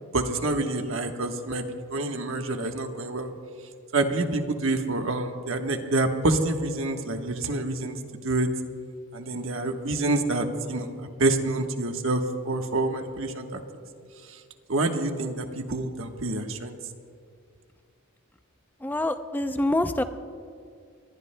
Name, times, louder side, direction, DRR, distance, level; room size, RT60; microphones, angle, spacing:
voice 1, 0.1-3.3 3.9-8.5 9.1-10.9 11.2-13.6 14.3-14.4 14.7-16.8, right 2 dB, 65° right, 4 dB, 1.3 m, -27 dB
voice 2, 18.8-20.0, left 1 dB, 10° left, 9 dB, 0.5 m, -26 dB
25.5 x 21.5 x 2.2 m, 2.2 s
head